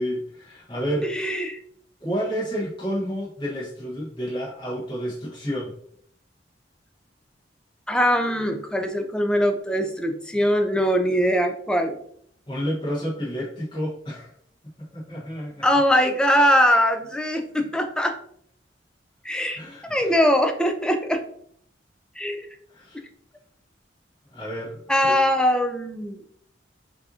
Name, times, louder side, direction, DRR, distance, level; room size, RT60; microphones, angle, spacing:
voice 1, 0.0-1.1 2.0-5.7 12.5-14.3 14.9-15.7 19.6-20.1 22.7-23.0 24.3-25.2, equal, 25° left, -7 dB, 1.2 m, -30 dB
voice 2, 1.1-1.6 7.9-12.0 15.6-18.2 19.2-19.6 19.9-21.2 22.2-22.5 24.9-26.2, equal, 5° left, 5 dB, 0.4 m, -21 dB
5.5 x 2.8 x 2.7 m, 0.65 s
head